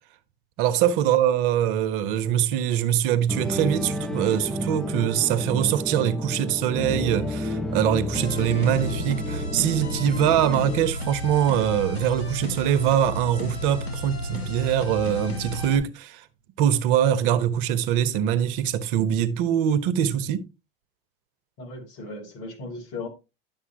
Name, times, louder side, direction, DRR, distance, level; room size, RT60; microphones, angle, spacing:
voice 1, 0.6-16.2 16.6-20.4, right 10 dB, 60° right, 1.1 m, -23 dB
sound 1, 3.3-10.9, left 1 dB, ahead, 0.8 m, -31 dB
sound 2, 8.1-15.8, equal, 90° left, 2.1 m, -32 dB
voice 2, 21.6-23.1, left 3 dB, 55° left, 2.8 m, -37 dB
11.0 x 7.2 x 2.9 m
hypercardioid pair, 90°, 30 cm